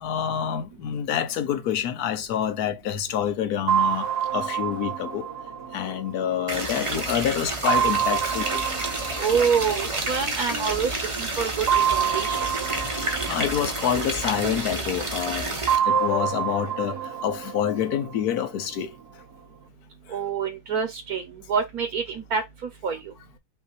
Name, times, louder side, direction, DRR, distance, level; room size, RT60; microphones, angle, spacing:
voice 1, 0.0-4.1 4.3-5.3 5.7-8.6 13.0-15.6 15.9-18.9, left 9 dB, 75° left, 1.3 m, -27 dB
sound 1, 3.7-7.0 7.7-10.6 11.7-14.8 15.7-18.8, right 9 dB, 90° right, 1.5 m, -28 dB
sound 2, 6.5-15.8, right 2 dB, 25° right, 0.8 m, -30 dB
voice 2, 9.2-10.9 11.2-12.4 20.1-21.2 21.5-22.4 22.8-23.0, right 6 dB, 70° right, 1.5 m, -26 dB
5.8 x 2.8 x 2.7 m
omnidirectional pair, 1.6 m